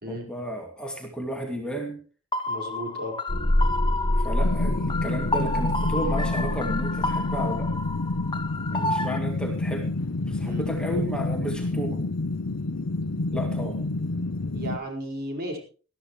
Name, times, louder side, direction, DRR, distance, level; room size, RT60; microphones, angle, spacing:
voice 1, 0.1-1.9 4.2-7.7 8.7-9.9 10.3-12.0 13.3-13.8, equal, 5° left, 1 dB, 2.3 m, -33 dB
sound 1, 2.3-9.2, left 2 dB, 20° left, 1.1 m, -31 dB
voice 2, 2.5-3.2 8.9-9.1 10.4-10.7 14.5-15.6, equal, 50° right, 1 dB, 4.8 m, -34 dB
sound 2, 3.3-8.2, left 1 dB, 45° left, 1.1 m, -27 dB
sound 3, 4.4-14.8, left 2 dB, 85° left, 0.8 m, -29 dB
20.5 x 13.5 x 3.2 m, 0.38 s
head